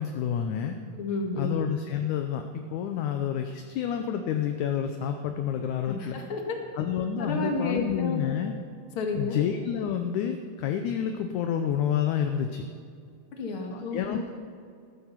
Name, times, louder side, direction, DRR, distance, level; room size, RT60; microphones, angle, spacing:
voice 1, 0.0-0.8 1.4-6.2 6.8-8.5 9.1-12.6 13.7-14.3, left 8 dB, 75° left, 6 dB, 1.9 m, -29 dB
voice 2, 0.9-1.5 5.9-6.6 7.2-8.2 8.9-9.4 13.3-14.2, left 3 dB, 45° left, 2 dB, 2.2 m, -31 dB
14.0 x 14.0 x 5.8 m, 2.3 s
omnidirectional pair, 4.1 m